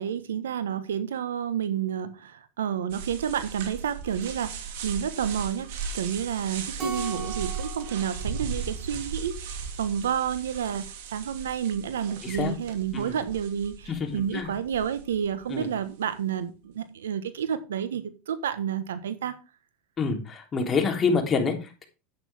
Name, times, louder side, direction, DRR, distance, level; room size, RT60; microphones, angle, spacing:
voice 1, 0.0-5.7 5.9-19.3, right 8 dB, 90° right, 12 dB, 1.3 m, -30 dB
sound 1, 2.9-15.4, right 5 dB, 70° right, 2.5 m, -37 dB
Keyboard (musical), 6.8-9.4, right 3 dB, 35° right, 3.8 m, -38 dB
voice 2, 13.9-14.5 15.5-15.7 20.0-21.8, left 4 dB, 30° left, 3 dB, 3.4 m, -27 dB
10.5 x 8.9 x 3.6 m, 0.30 s
hypercardioid pair, 100°, 0 cm